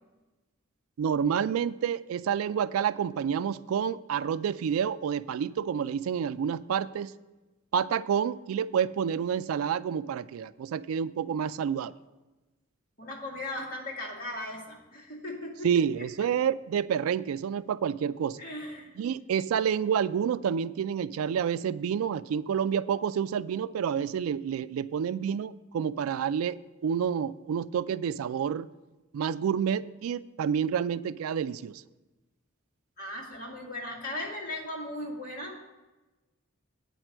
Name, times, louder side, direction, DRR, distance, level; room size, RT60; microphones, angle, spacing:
voice 1, 1.0-7.1 7.7-11.9 15.6-18.4 19.0-26.6 26.8-28.7 29.1-31.8, right 7 dB, 90° right, 16 dB, 0.3 m, -29 dB
voice 2, 13.0-15.7 18.4-18.9 33.0-35.7, left 1 dB, 45° left, -3 dB, 2.0 m, -37 dB
8.9 x 4.6 x 7.5 m, 1.1 s
head